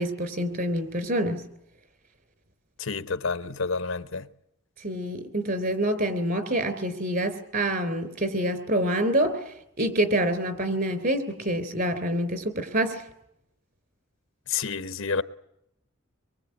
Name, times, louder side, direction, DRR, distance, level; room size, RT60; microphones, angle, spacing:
voice 1, 0.0-1.4 4.8-13.0, right 1 dB, 50° right, 3.6 m, -27 dB
voice 2, 2.8-4.3 14.5-15.2, left 5 dB, 85° left, 1.0 m, -29 dB
24.5 x 23.0 x 8.5 m
head